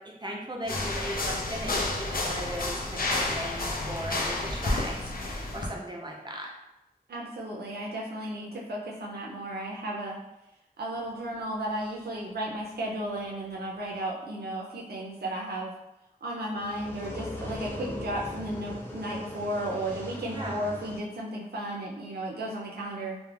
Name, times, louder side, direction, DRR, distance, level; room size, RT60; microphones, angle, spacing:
voice 1, 0.2-6.5 20.3-20.6, right 1 dB, 30° right, -1 dB, 0.6 m, -37 dB
sound 1, 0.7-5.7, left 2 dB, 65° left, 0.5 m, -30 dB
voice 2, 7.1-10.2 10.8-15.7 16.2-23.2, right 1 dB, 85° right, -3 dB, 0.4 m, -34 dB
sound 2, 16.5-21.0, left 1 dB, 15° left, 0.6 m, -39 dB
2.3 x 2.1 x 3.2 m, 0.93 s
wide cardioid pair, 55°, 16 cm